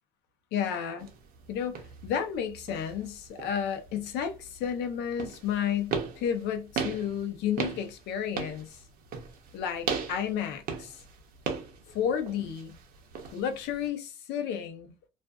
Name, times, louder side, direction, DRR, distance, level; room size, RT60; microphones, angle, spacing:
voice 1, 0.5-1.1 1.5-8.8 9.5-11.0 11.9-12.7 13.3-15.1, left 8 dB, 85° left, 0.7 m, -32 dB
sound 1, 1.0-13.9, right 6 dB, 60° right, 0.7 m, -38 dB
2.5 x 2.3 x 2.2 m
cardioid pair, 110°, 17 cm